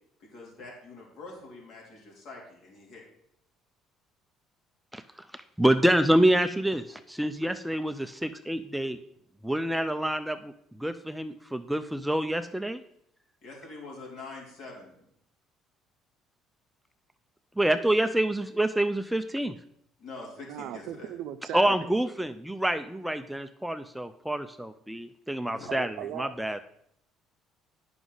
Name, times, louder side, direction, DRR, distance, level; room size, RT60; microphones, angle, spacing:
voice 1, 0.2-3.0 13.4-14.9 20.0-21.1 25.5-25.7, left 3 dB, 65° left, -2 dB, 3.1 m, -44 dB
voice 2, 5.3-9.0 9.4-10.5 10.8-12.8 17.6-19.5 21.5-26.6, right 1 dB, 5° right, 10 dB, 0.4 m, -27 dB
voice 3, 20.5-21.9 25.7-26.3, right 11 dB, 70° right, 11 dB, 0.5 m, -38 dB
9.2 x 6.0 x 4.0 m, 0.73 s
supercardioid pair, 90°, 0 cm